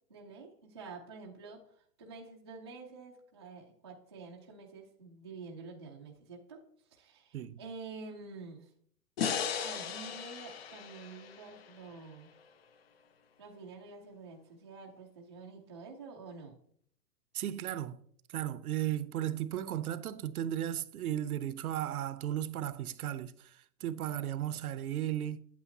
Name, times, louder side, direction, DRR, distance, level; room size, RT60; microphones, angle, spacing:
voice 1, 0.1-6.6 6.9-8.7 9.5-12.3 13.4-16.6, right 4 dB, 20° right, 0.4 m, -48 dB
sound 1, 9.2-12.4, left 7 dB, 40° left, 0.5 m, -37 dB
voice 2, 17.3-18.0 18.3-25.4, right 11 dB, 65° right, 0.7 m, -35 dB
8.6 x 8.5 x 2.7 m
hypercardioid pair, 160°, 48 cm